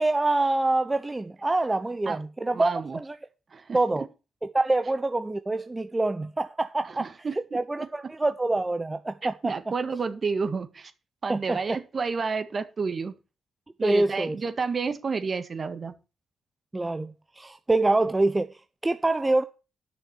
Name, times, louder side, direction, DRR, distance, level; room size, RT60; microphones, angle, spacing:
voice 1, 0.0-3.1 3.7-4.0 4.5-7.1 7.5-9.5 11.3-11.6 13.8-14.3 16.7-19.4, right 2 dB, 25° right, 0.8 m, -25 dB
voice 2, 2.5-3.0 3.5-3.8 6.8-7.9 9.4-10.9 11.2-13.1 13.8-15.9, right 5 dB, 45° right, 1.7 m, -30 dB
11.0 x 6.4 x 7.4 m
hypercardioid pair, 45°, 0 cm